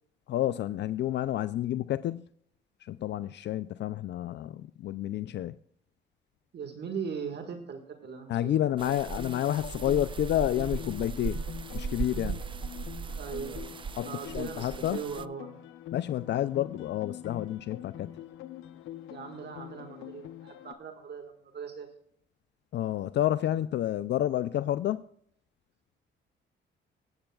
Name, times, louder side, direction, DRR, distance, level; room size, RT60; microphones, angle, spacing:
voice 1, 0.3-2.2 2.9-5.5 8.3-11.4 11.7-12.4 14.0-14.1 14.3-15.0 15.9-18.1 22.7-25.0, left 12 dB, 60° left, 0.4 m, -29 dB
voice 2, 6.5-9.0 13.2-15.6 19.1-21.9, right 6 dB, 60° right, 1.8 m, -40 dB
sound 1, 8.8-15.3, right 5 dB, 25° right, 0.3 m, -37 dB
sound 2, 8.9-20.7, left 11 dB, 90° left, 0.8 m, -44 dB
22.5 x 8.9 x 2.3 m
cardioid pair, 90°, 20 cm